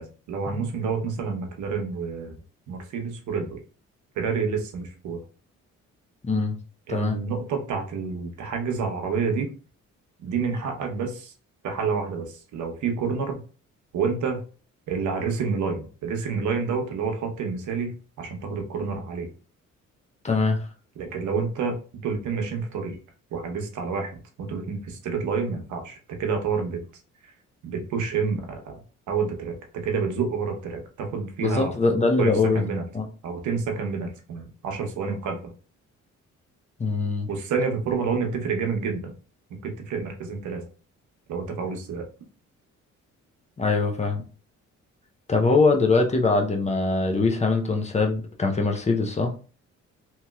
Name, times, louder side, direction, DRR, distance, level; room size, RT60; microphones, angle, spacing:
voice 1, 0.0-2.4 2.7-3.6 4.2-5.2 6.9-9.5 10.2-11.3 11.6-13.4 13.9-14.4 14.9-17.9 18.2-19.3 21.0-21.8 22.0-23.0 23.3-26.8 27.6-28.8 29.1-31.7 32.2-32.8 33.2-35.4 37.3-39.1 39.6-40.6 41.3-42.1, right 5 dB, 75° right, 3 dB, 0.9 m, -28 dB
voice 2, 6.2-6.6 6.9-7.2 20.2-20.6 31.4-32.6 32.9-33.0 36.8-37.3 43.6-44.2 45.3-49.3, left 3 dB, 25° left, 3 dB, 0.6 m, -22 dB
2.9 x 2.8 x 2.3 m, 0.37 s
cardioid pair, 90°, 30 cm